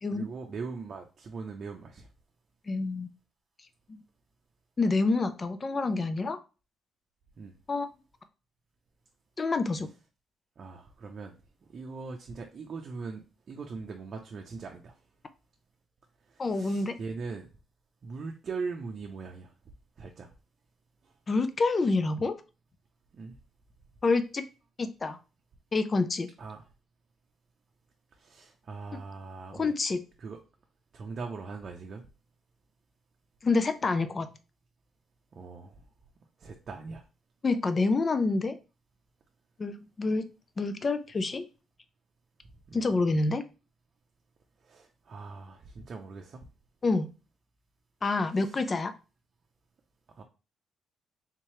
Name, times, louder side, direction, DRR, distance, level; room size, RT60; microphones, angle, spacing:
voice 1, 0.1-2.1 7.4-7.5 10.6-11.4 11.6-15.0 16.3-17.5 18.0-19.5 20.0-20.3 21.0-21.1 23.1-23.3 26.4-26.6 28.1-29.7 30.2-30.4 30.9-32.1 35.3-35.8 36.4-37.0 42.7-42.9 44.6-46.5 48.3-48.6 50.1-50.2, right 4 dB, 50° right, 2 dB, 0.6 m, -41 dB
voice 2, 2.7-3.1 3.9-4.0 4.8-6.4 7.7-7.9 9.4-9.9 16.4-17.0 21.3-22.4 24.0-24.4 24.8-25.2 25.7-26.3 29.5-30.0 33.4-34.3 37.4-38.6 39.6-40.3 40.6-41.4 42.7-43.5 46.8-47.1 48.0-48.9, left 3 dB, 35° left, 10 dB, 0.5 m, -27 dB
3.6 x 2.8 x 3.1 m, 0.31 s
cardioid pair, 90°, 0 cm